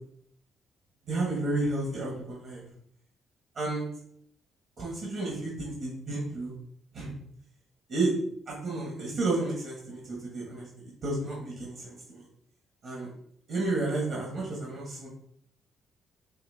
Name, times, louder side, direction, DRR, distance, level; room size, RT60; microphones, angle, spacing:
voice 1, 1.1-2.6 3.5-3.9 4.8-6.5 6.9-7.1 7.9-8.1 8.5-12.2 12.8-13.1 13.5-15.1, right 2 dB, 60° right, -3 dB, 1.4 m, -32 dB
5.6 x 2.7 x 2.7 m, 0.67 s
cardioid pair, 90°, 0 cm